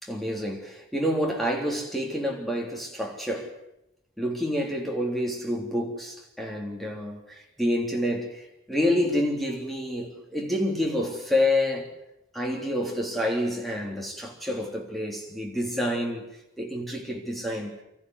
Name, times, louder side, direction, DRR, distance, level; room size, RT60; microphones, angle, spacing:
voice 1, 0.0-3.5 4.2-11.9 12.3-16.2 16.6-17.7, left 1 dB, ahead, 3.4 m, -28 dB
25.0 x 14.5 x 9.7 m
head